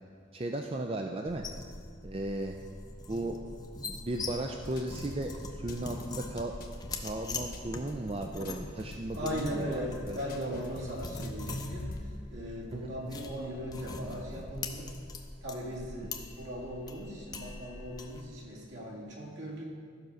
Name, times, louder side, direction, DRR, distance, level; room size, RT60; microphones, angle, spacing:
voice 1, 0.3-1.4 2.0-2.5 3.1-3.4 3.9-6.6 7.0-10.2 12.7-12.9, right 1 dB, 25° right, 3 dB, 0.4 m, -36 dB
sound 1, 1.3-18.2, left 3 dB, 20° left, 0.6 m, -42 dB
sound 2, 4.6-12.0, left 1 dB, 45° left, 1.0 m, -47 dB
voice 2, 9.1-11.9 12.3-14.9 15.4-19.6, equal, 65° right, -4 dB, 2.3 m, -38 dB
13.5 x 5.3 x 6.3 m, 2.1 s
head